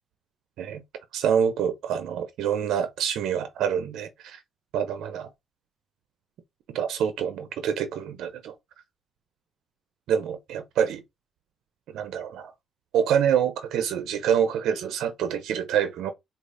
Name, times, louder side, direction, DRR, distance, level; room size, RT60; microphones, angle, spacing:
voice 1, 1.1-4.4 4.7-5.3 6.7-8.5 10.1-11.0 11.9-12.5 12.9-16.1, right 8 dB, 80° right, 0.5 m, -26 dB
4.8 x 2.4 x 2.5 m
cardioid pair, 90°, 0 cm